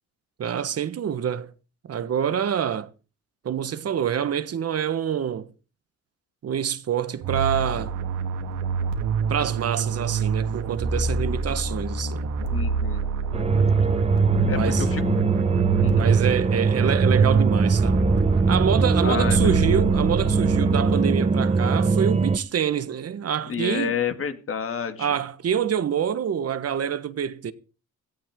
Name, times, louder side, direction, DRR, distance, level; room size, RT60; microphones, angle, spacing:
voice 1, 0.4-1.5 1.9-2.9 3.4-5.5 6.4-7.9 9.3-12.3 14.4-14.8 15.9-18.0 18.5-24.0 25.0-27.5, right 8 dB, 55° right, 1.4 m, -26 dB
sound 1, 7.2-21.3, right 4 dB, 90° right, 3.1 m, -27 dB
voice 2, 12.5-13.0 14.5-15.0 15.8-16.1 19.0-19.7 23.5-25.2, left 7 dB, 45° left, 2.6 m, -30 dB
sound 2, 13.3-22.4, right 4 dB, 20° right, 0.9 m, -21 dB
17.0 x 14.5 x 3.8 m
cardioid pair, 90°, 30 cm